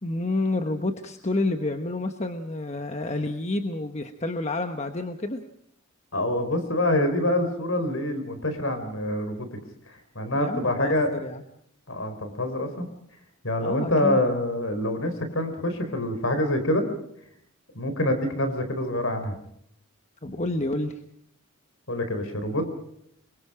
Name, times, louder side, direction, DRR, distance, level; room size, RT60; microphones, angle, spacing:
voice 1, 0.0-5.4 10.4-11.4 13.6-14.2 20.2-21.0, left 2 dB, 30° left, 6 dB, 1.2 m, -29 dB
voice 2, 6.1-9.5 9.9-11.1 11.9-12.8 13.4-16.8 17.7-19.4 21.9-22.6, left 1 dB, 60° left, 8 dB, 4.4 m, -26 dB
26.5 x 23.5 x 5.0 m, 0.72 s
head